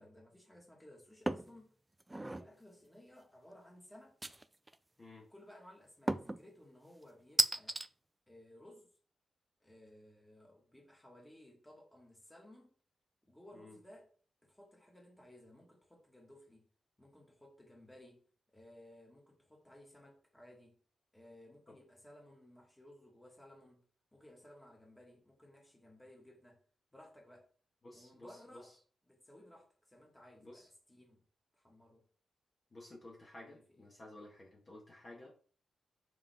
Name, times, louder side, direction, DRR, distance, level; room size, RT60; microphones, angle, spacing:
voice 1, 0.0-1.8 2.3-4.3 5.3-7.8 8.3-8.9 9.6-12.7 13.2-14.1 14.4-16.7 17.0-18.2 18.5-20.8 21.1-23.8 24.1-26.6 26.9-27.5 27.9-28.7 29.0-31.2 31.5-32.0 33.4-33.9, left 1 dB, 5° left, 1.9 m, -59 dB
sound 1, 1.3-1.5 2.0-2.5 4.2-4.7 6.1-6.4 7.4-7.9, right 1 dB, 10° right, 0.3 m, -34 dB
voice 2, 27.8-28.4 28.6-28.7 30.4-30.7 32.7-35.3, left 2 dB, 25° left, 1.5 m, -53 dB
6.9 x 5.4 x 3.5 m
wide cardioid pair, 165°, 0 cm